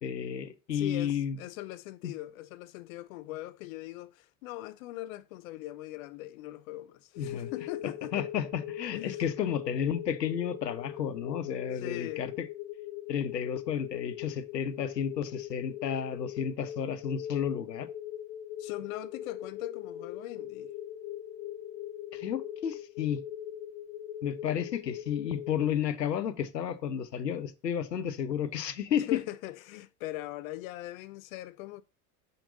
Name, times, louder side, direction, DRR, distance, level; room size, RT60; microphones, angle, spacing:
voice 1, 0.0-1.4 2.0-2.1 7.2-7.5 8.1-12.5 13.1-17.9 22.1-23.2 24.2-29.2, left 8 dB, 90° left, 0.8 m, -32 dB
voice 2, 0.7-8.3 8.9-9.2 11.7-12.2 18.6-20.7 29.1-31.8, left 16 dB, 60° left, 0.6 m, -40 dB
sound 1, 7.1-25.7, left 11 dB, 40° left, 1.3 m, -41 dB
5.9 x 5.2 x 3.9 m
hypercardioid pair, 75°, 48 cm